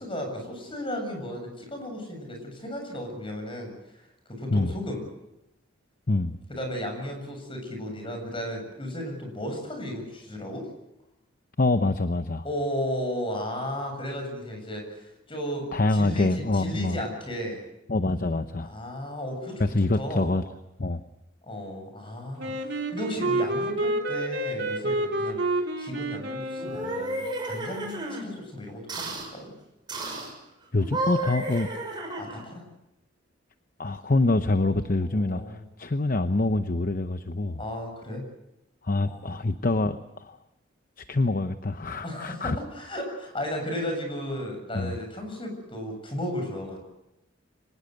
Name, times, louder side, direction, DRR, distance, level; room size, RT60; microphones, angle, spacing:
voice 1, 0.0-4.0 4.3-5.0 6.5-10.7 12.4-17.6 18.6-20.4 21.4-29.5 32.2-32.6 35.0-35.7 37.6-38.2 39.1-39.4 42.0-46.8, equal, 25° left, 4 dB, 7.5 m, -34 dB
voice 2, 11.6-12.4 15.7-17.0 17.9-18.7 19.6-20.4 20.8-21.0 30.7-31.7 33.8-37.6 38.8-40.4 41.0-42.6 44.7-44.9, left 2 dB, 45° left, 9 dB, 0.8 m, -25 dB
Wind instrument woodwind instrument, 22.4-27.4, right 1 dB, 55° right, 3.2 m, -29 dB
sound 1, 26.5-28.2 28.9-29.3 29.9-30.3 30.8-32.5, right 2 dB, 20° right, 6.4 m, -32 dB
25.5 x 19.0 x 8.0 m, 0.90 s
head